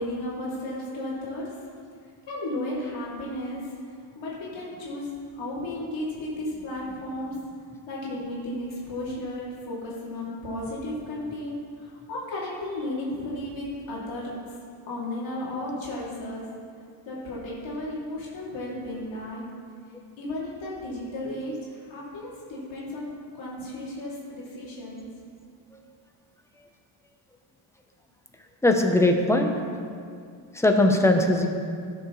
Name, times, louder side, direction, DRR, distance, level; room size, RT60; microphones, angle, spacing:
voice 1, 0.0-1.4 2.3-3.6 4.2-5.1 5.4-7.4 7.9-11.6 12.1-14.3 14.9-16.4 17.1-19.4 20.2-21.6 21.9-25.1, left 1 dB, 70° left, -6 dB, 2.7 m, -34 dB
voice 2, 28.6-29.5 30.5-31.5, left 1 dB, 5° left, 3 dB, 0.7 m, -20 dB
16.5 x 6.6 x 3.2 m, 2.3 s
cardioid pair, 135°, 48 cm